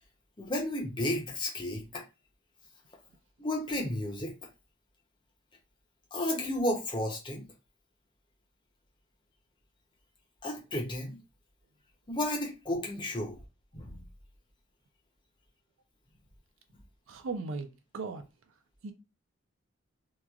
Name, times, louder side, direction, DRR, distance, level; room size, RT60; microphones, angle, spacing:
voice 1, 0.4-2.0 3.4-4.3 6.1-7.4 10.4-11.2 12.1-13.4 13.7-13.9, left 1 dB, 25° left, 0.6 m, -32 dB
voice 2, 17.1-18.3 18.8-18.9, right 4 dB, 80° right, 0.4 m, -37 dB
2.9 x 2.3 x 2.3 m
head